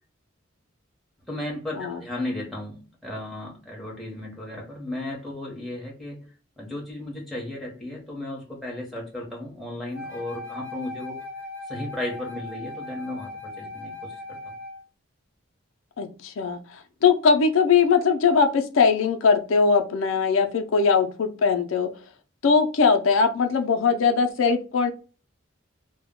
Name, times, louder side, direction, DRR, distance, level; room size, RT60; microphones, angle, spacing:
voice 1, 1.3-6.3 6.6-11.2 11.7-14.6, left 1 dB, ahead, -3 dB, 0.8 m, -35 dB
Wind instrument woodwind instrument, 9.9-14.8, left 2 dB, 45° right, 0.7 m, -38 dB
voice 2, 16.0-21.9 22.4-24.9, left 5 dB, 75° left, 5 dB, 0.4 m, -21 dB
2.2 x 2.1 x 3.5 m, 0.35 s
head